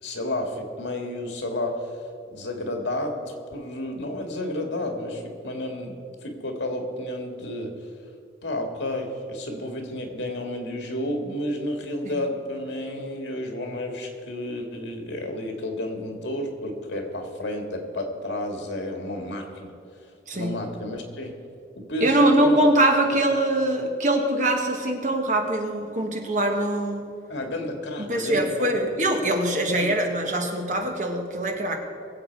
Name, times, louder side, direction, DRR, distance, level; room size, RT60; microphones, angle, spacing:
voice 1, 0.0-7.9 8.4-19.7 20.3-21.4 21.8-22.6 27.3-28.8 29.7-30.0, left 1 dB, 85° left, 3 dB, 2.0 m, -31 dB
voice 2, 20.3-20.6 22.0-27.1 28.0-31.8, right 1 dB, 45° right, 2 dB, 1.5 m, -23 dB
21.5 x 7.8 x 4.7 m, 2.4 s
head